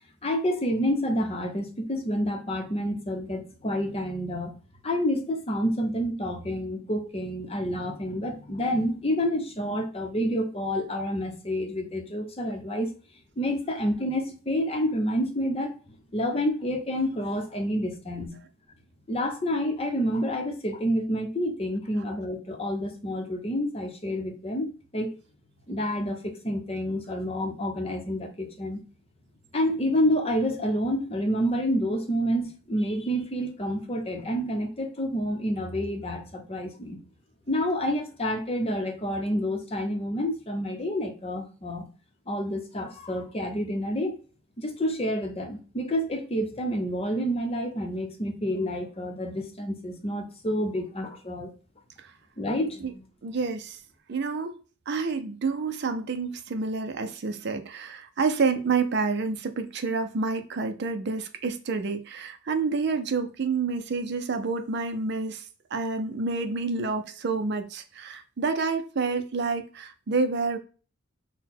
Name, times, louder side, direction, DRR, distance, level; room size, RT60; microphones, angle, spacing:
voice 1, 0.2-4.5 4.8-12.9 13.4-15.7 16.1-18.4 19.1-25.1 25.7-28.8 29.5-37.0 37.5-41.8 42.3-44.1 44.6-51.5 52.4-53.0, equal, 30° left, 3 dB, 0.8 m, -28 dB
voice 2, 53.2-53.8 54.1-54.5 54.9-65.4 65.7-70.6, right 4 dB, 55° right, 8 dB, 0.5 m, -28 dB
4.0 x 2.2 x 4.2 m, 0.37 s
head